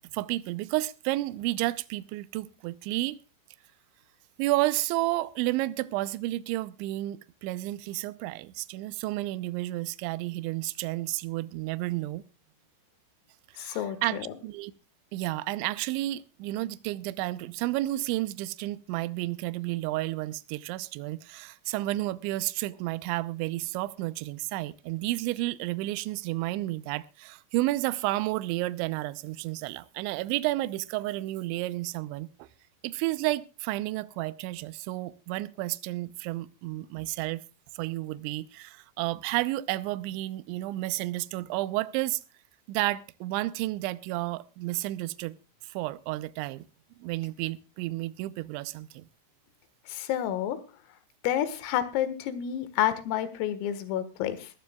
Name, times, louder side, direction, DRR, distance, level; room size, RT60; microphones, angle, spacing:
voice 1, 0.1-3.2 4.4-12.2 13.5-14.7 15.1-32.5 32.8-37.4 37.7-42.2 42.7-45.4 45.6-46.7 47.0-49.0, right 17 dB, 80° right, 2.8 m, -31 dB
voice 2, 13.6-14.3 49.9-50.6 51.2-54.5, left 11 dB, 85° left, 4.3 m, -29 dB
22.0 x 14.0 x 2.3 m
omnidirectional pair, 5.9 m